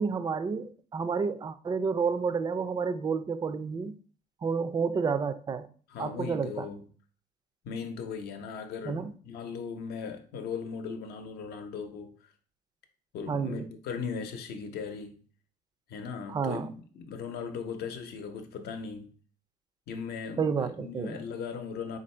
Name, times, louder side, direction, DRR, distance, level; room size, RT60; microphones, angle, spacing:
voice 1, 0.0-3.9 4.4-5.7 6.0-6.7 8.9-9.1 13.3-13.7 16.3-16.7 20.4-21.2, right 5 dB, 25° right, 0.3 m, -30 dB
voice 2, 5.9-6.9 7.6-12.3 13.1-15.2 15.9-16.7 16.9-19.1 19.9-22.0, left 5 dB, 70° left, 0.7 m, -38 dB
3.7 x 2.5 x 4.3 m
cardioid pair, 110°, 17 cm